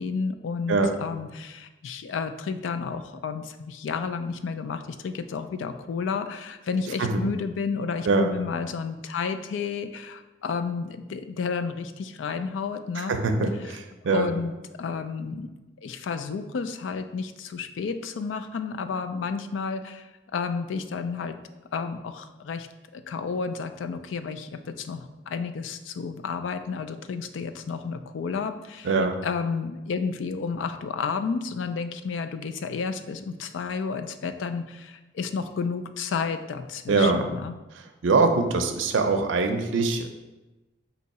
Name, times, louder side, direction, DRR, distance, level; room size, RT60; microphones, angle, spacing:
voice 1, 0.0-13.2 13.6-13.8 14.1-14.5 14.8-15.5 15.8-21.4 21.7-22.7 22.9-28.9 29.2-37.5, left 5 dB, 85° left, 9 dB, 0.3 m, -31 dB
voice 2, 13.0-14.3 28.8-29.2 36.9-37.2 38.0-40.1, right 3 dB, 85° right, 6 dB, 0.5 m, -23 dB
4.5 x 2.8 x 4.1 m, 1.1 s
head